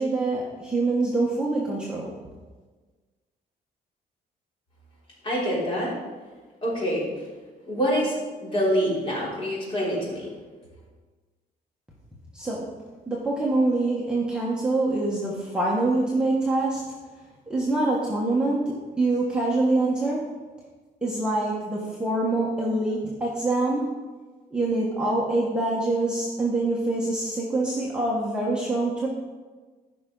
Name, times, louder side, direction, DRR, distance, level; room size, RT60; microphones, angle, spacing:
voice 1, 0.0-2.1 12.3-12.6 13.1-16.8 17.5-20.2 21.0-23.9 24.5-29.1, right 2 dB, 5° right, -5 dB, 1.3 m, -25 dB
voice 2, 5.2-5.9 6.6-7.1 7.7-8.1 8.4-10.3, equal, 35° left, -6 dB, 3.6 m, -25 dB
14.5 x 5.9 x 3.9 m, 1.3 s
cardioid pair, 165°, 17 cm